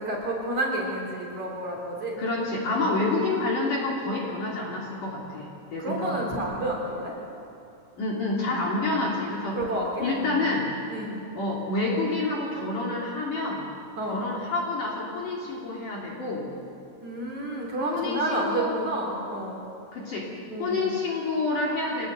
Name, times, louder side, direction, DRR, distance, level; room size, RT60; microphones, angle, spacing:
voice 1, 0.0-2.2 2.7-3.2 5.8-7.1 8.4-8.6 9.5-10.4 10.9-11.2 14.0-14.2 17.0-19.6 20.5-21.0, right 1 dB, 40° right, -2 dB, 4.2 m, -30 dB
voice 2, 2.2-6.2 8.0-9.6 10.0-10.7 11.3-13.7 14.1-16.5 17.9-18.7 19.9-20.3 20.6-22.1, left 2 dB, 45° left, -3 dB, 3.8 m, -28 dB
25.0 x 19.5 x 8.0 m, 2.8 s
omnidirectional pair, 5.9 m